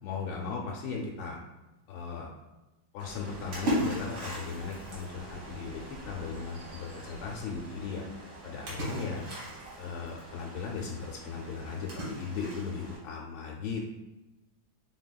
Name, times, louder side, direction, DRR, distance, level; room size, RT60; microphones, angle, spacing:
voice 1, 0.0-1.4 1.9-2.3 2.9-8.0 8.4-9.3 9.8-13.8, left 5 dB, 90° left, -2 dB, 1.4 m, -37 dB
Splash splatter, 3.0-13.0, equal, 85° right, 2.2 m, -38 dB
4.9 x 3.4 x 2.2 m, 1.0 s
omnidirectional pair, 2.1 m